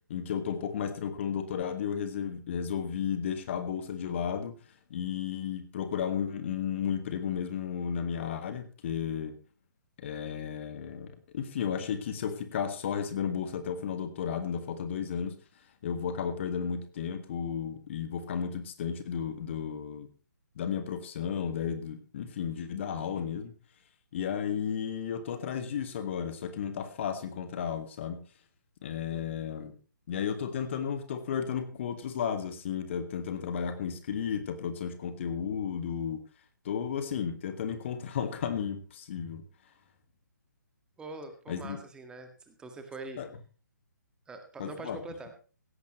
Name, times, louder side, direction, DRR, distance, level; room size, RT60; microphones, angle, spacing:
voice 1, 0.1-4.5 4.9-9.4 10.0-15.4 15.8-20.1 20.5-23.5 24.1-28.2 28.8-29.7 30.1-36.2 36.6-39.4 41.5-41.8 43.2-43.3 44.6-45.0, left 7 dB, 40° left, 9 dB, 1.8 m, -33 dB
voice 2, 41.0-43.2 44.3-45.3, right 3 dB, 10° right, 7 dB, 1.8 m, -43 dB
17.0 x 14.5 x 3.1 m, 0.37 s
figure-of-eight pair, 135°, 10 cm